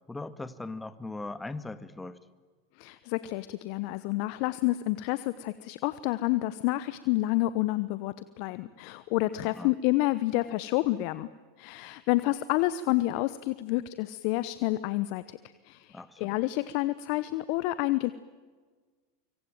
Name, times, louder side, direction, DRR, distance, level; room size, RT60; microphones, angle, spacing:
voice 1, 0.1-2.2 9.4-9.7 15.9-16.4, left 2 dB, 10° left, 13 dB, 1.9 m, -39 dB
voice 2, 2.8-11.3 11.6-18.1, left 17 dB, 60° left, 15 dB, 1.0 m, -29 dB
25.0 x 25.0 x 9.1 m, 1.4 s
hypercardioid pair, 95°, 0 cm